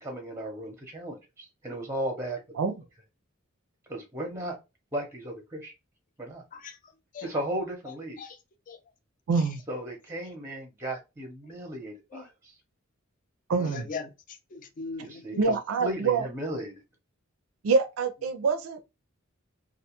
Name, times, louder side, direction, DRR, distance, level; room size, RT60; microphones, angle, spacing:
voice 1, 0.0-2.4 3.9-4.6 4.9-5.7 6.2-6.4 7.2-8.2 9.7-12.3 15.0-16.8, right 1 dB, 15° right, 0.6 m, -35 dB
voice 2, 6.5-7.3 7.9-8.8 9.3-9.6 10.2-10.3 11.4-11.5 12.1-12.3 13.6-15.5, left 4 dB, 40° left, 0.4 m, -42 dB
voice 3, 9.3-9.6 13.5-13.8 15.4-16.2 17.6-18.8, right 4 dB, 75° right, 0.4 m, -25 dB
2.4 x 2.2 x 2.8 m
head